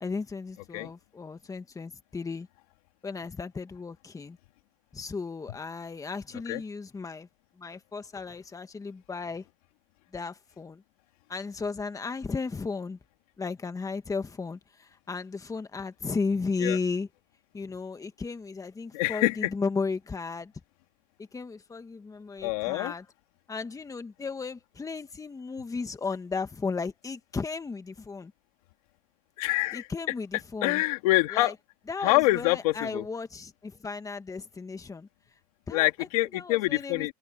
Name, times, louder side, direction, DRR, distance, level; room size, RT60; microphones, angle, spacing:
voice 1, 0.0-2.5 3.0-4.4 4.9-7.3 7.6-9.4 10.1-10.8 11.3-13.0 13.4-17.1 17.5-20.5 21.3-23.1 23.5-28.3 29.7-30.8 31.3-31.5 31.9-35.1 35.7-35.9 36.3-37.1, left 4 dB, 20° left, 1.8 m, -35 dB
voice 2, 18.9-19.5 22.4-22.9 29.4-29.9 30.6-31.6 32.0-33.0 35.7-37.1, left 21 dB, 85° left, 3.4 m, -26 dB
supercardioid pair, 105°, 18 cm